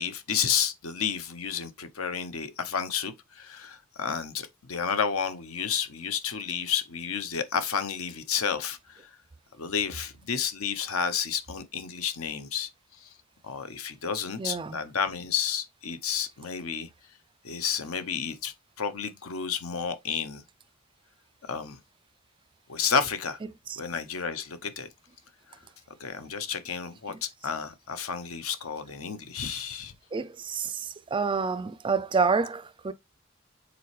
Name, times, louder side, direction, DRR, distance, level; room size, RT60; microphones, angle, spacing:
voice 1, 0.0-9.1 9.6-12.7 13.0-13.1 13.4-16.9 17.4-20.4 21.5-21.8 22.7-23.4 23.8-24.9 26.0-29.9, left 7 dB, 75° left, 0.9 m, -31 dB
voice 2, 14.4-14.8 27.1-27.2 30.1-32.9, right 5 dB, 25° right, 0.4 m, -28 dB
6.9 x 4.2 x 3.3 m
head